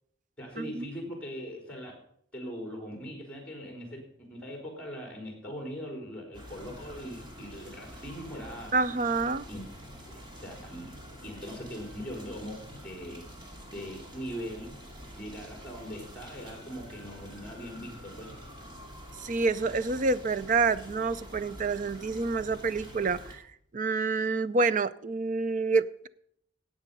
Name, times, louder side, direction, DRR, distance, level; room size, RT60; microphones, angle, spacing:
voice 1, 0.4-1.9 2.3-8.8 9.5-9.6 10.1-10.9 11.2-13.2 13.7-14.7 15.1-18.4, equal, 5° left, 1 dB, 3.9 m, -41 dB
sound 1, 6.3-23.3, equal, 25° right, 2.4 m, -47 dB
voice 2, 8.7-9.4 19.2-23.4 23.7-26.1, right 3 dB, 40° right, 15 dB, 0.5 m, -28 dB
17.5 x 8.0 x 5.4 m, 0.66 s
head